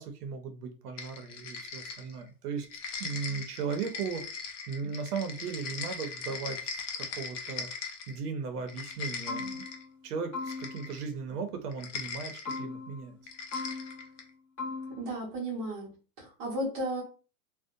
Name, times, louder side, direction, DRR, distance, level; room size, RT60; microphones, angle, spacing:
voice 1, 0.0-9.6 10.0-13.2, right 5 dB, 75° right, 6 dB, 0.7 m, -37 dB
sound 1, 1.0-2.3 2.6-8.2 8.6-9.8 10.4-11.1 11.7-12.6 13.3-14.3, left 5 dB, 50° left, 0.5 m, -40 dB
sound 2, 8.9-9.0 9.3-10.0 10.3-11.0 12.4-13.1 13.5-14.2 14.6-15.0, left 4 dB, 20° left, 1.2 m, -38 dB
voice 2, 14.9-15.9 16.2-17.0, right 1 dB, 20° right, -2 dB, 0.6 m, -34 dB
2.6 x 2.1 x 2.5 m, 0.35 s
supercardioid pair, 160°, 48 cm